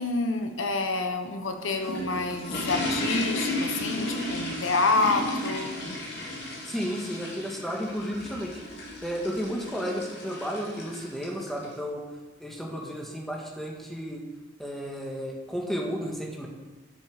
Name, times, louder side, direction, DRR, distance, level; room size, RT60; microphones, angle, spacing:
voice 1, 0.0-5.7, left 3 dB, 85° left, 6 dB, 1.2 m, -28 dB
sound 1, 1.4-11.7, left 1 dB, 55° left, 2.8 m, -34 dB
voice 2, 6.7-8.5 9.0-12.0 12.4-14.2 14.6-16.5, equal, ahead, -1 dB, 1.8 m, -33 dB
10.5 x 7.1 x 6.7 m, 1.2 s
head